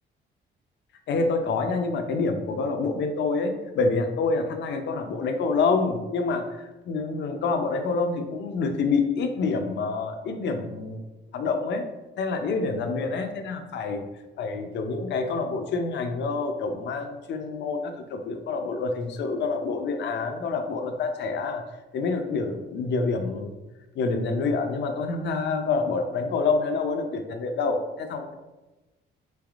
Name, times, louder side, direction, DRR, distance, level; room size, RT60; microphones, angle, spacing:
voice 1, 1.1-11.0 11.3-11.8 12.2-14.0 14.4-21.6 21.9-23.5 24.0-28.3, left 4 dB, 65° left, 6 dB, 0.5 m, -27 dB
3.3 x 3.2 x 2.4 m, 1.1 s
cardioid pair, 90°, 20 cm